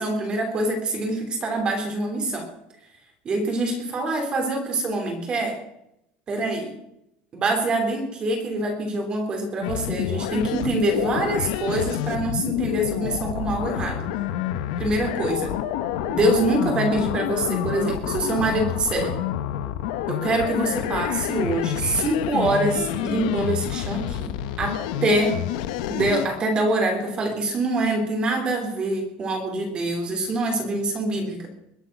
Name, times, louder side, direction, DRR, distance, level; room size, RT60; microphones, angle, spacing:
voice 1, 0.0-2.5 3.2-5.6 6.3-6.7 7.3-14.1 14.8-15.6 16.1-19.2 20.1-24.3 24.6-25.4 25.9-31.5, right 2 dB, 25° right, 3 dB, 3.1 m, -25 dB
sound 1, 9.6-26.3, left 11 dB, 85° left, 1.2 m, -28 dB
21.5 x 8.3 x 6.0 m, 0.80 s
cardioid pair, 175°, 4 cm